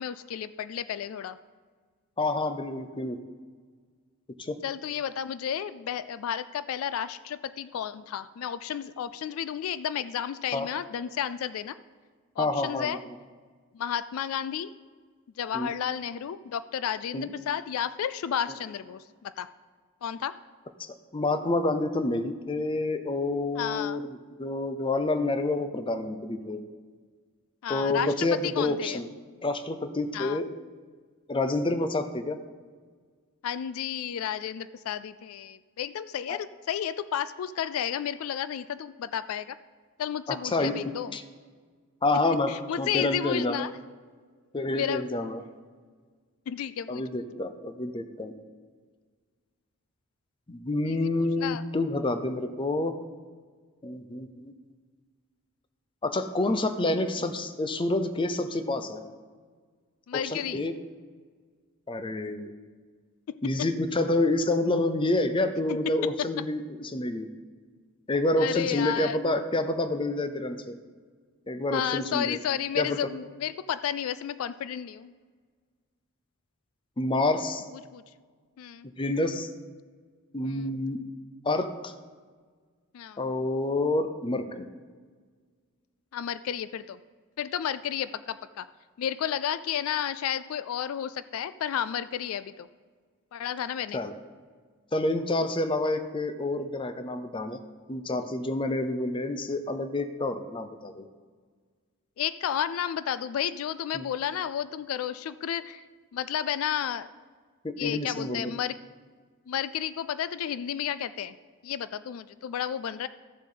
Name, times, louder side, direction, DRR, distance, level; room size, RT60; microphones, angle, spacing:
voice 1, 0.0-1.4 4.6-11.8 12.4-13.0 13.7-14.7 15.4-19.5 20.0-20.3 23.6-24.0 27.6-29.0 30.1-30.4 33.4-39.6 40.0-41.2 42.5-43.7 44.7-45.1 46.5-47.2 50.9-51.6 60.1-60.6 63.3-63.7 65.7-65.8 68.4-69.2 71.7-75.1 77.9-78.0 78.6-78.9 80.4-80.7 82.9-83.2 86.1-87.0 87.4-88.7 89.0-92.7 93.3-94.0 102.2-105.8 106.1-107.1 107.8-108.7 109.5-111.4 111.6-113.1, left 9 dB, 80° left, 15 dB, 0.3 m, -32 dB
voice 2, 2.2-3.2 4.4-4.6 10.5-10.7 12.4-13.0 15.5-15.7 17.1-17.3 20.8-26.6 27.7-29.1 29.4-30.5 31.3-32.4 36.3-36.4 40.3-40.7 41.1-41.2 42.0-43.7 44.5-45.4 46.9-48.3 50.5-53.0 53.8-54.5 56.0-59.0 60.1-60.7 61.9-62.5 63.4-67.3 68.1-70.8 71.5-72.4 72.8-73.0 77.0-77.6 79.0-79.5 80.3-81.0 81.4-81.9 83.2-84.7 93.9-94.1 94.9-97.6 97.9-101.1 103.9-104.1 107.6-108.6, left 2 dB, 25° left, 9 dB, 0.6 m, -28 dB
14.0 x 7.3 x 3.9 m, 1.6 s
head